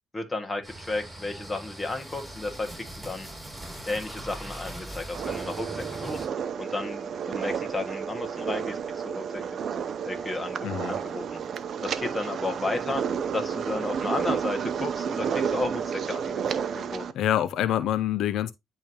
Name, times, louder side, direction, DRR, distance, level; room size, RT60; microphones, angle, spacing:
voice 1, 0.1-3.3 3.9-6.3 6.6-11.4 11.8-13.0 13.3-17.1, left 2 dB, 20° left, 1.8 m, -33 dB
sound 1, 0.6-6.3, right 1 dB, 5° right, 4.9 m, -40 dB
sound 2, 5.1-17.1, right 7 dB, 60° right, 0.6 m, -31 dB
voice 2, 10.6-10.9 16.7-16.8 17.1-18.5, left 11 dB, 80° left, 0.4 m, -26 dB
10.5 x 3.5 x 2.9 m
cardioid pair, 90°, 0 cm